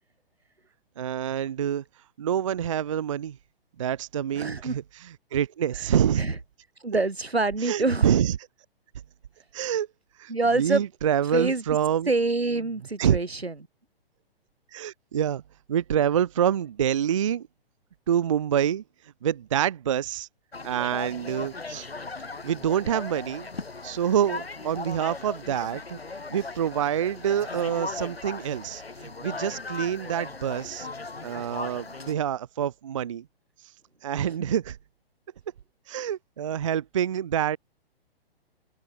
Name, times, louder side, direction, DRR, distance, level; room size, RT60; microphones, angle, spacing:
voice 1, 1.0-1.8 2.2-3.4 3.8-4.8 5.3-6.2 7.6-8.4 9.5-9.9 10.2-12.1 13.0-13.2 14.7-15.4 15.7-17.5 18.1-18.8 19.2-20.3 20.6-21.9 22.4-23.5 23.8-26.0 26.3-30.9 31.2-33.3 34.0-34.8 35.9-37.6, right 9 dB, 35° right, 0.4 m, -26 dB
voice 2, 4.3-4.8 5.8-6.3 6.8-8.1 10.3-10.8 11.3-11.6 12.1-13.5 34.3-34.5, right 3 dB, 85° right, 1.7 m, -26 dB
sound 1, 20.5-32.1, left 3 dB, 75° left, 3.3 m, -38 dB
open air
figure-of-eight pair, 120°, 30 cm